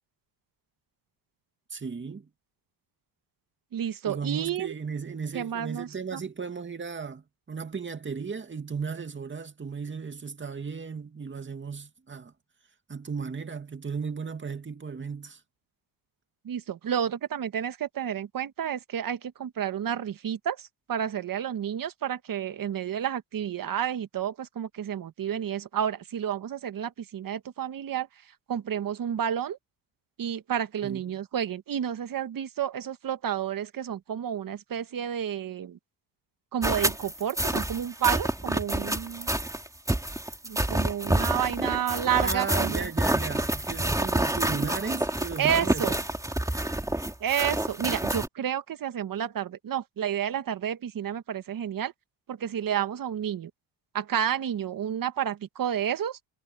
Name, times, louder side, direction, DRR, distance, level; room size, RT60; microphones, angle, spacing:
voice 1, 1.7-2.3 4.0-12.3 12.9-15.4 30.8-31.1 42.2-45.9, right 5 dB, 25° right, 2.3 m, -35 dB
voice 2, 3.7-4.7 5.3-6.2 16.4-28.1 28.5-29.6 30.2-35.8 36.5-39.3 40.4-42.9 45.4-46.0 47.2-51.9 52.3-53.5 53.9-56.2, right 9 dB, 45° right, 1.6 m, -30 dB
sound 1, 36.6-48.3, right 1 dB, 5° right, 2.8 m, -28 dB
cardioid pair, 100°, 45 cm